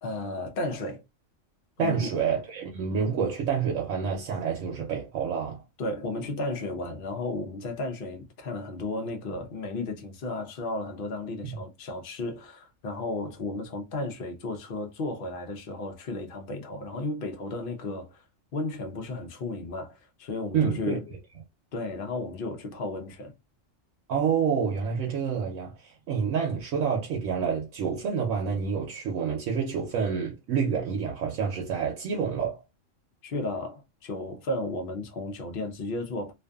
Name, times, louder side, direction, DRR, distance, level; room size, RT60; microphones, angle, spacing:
voice 1, 0.0-1.0 1.8-2.1 5.8-18.2 18.5-21.1 21.7-23.3 33.2-36.3, left 2 dB, 55° left, 0.8 m, -34 dB
voice 2, 1.8-5.6 11.4-11.5 20.5-21.0 24.1-32.6, right 6 dB, 85° right, 1.0 m, -28 dB
2.5 x 2.5 x 2.2 m
omnidirectional pair, 1.3 m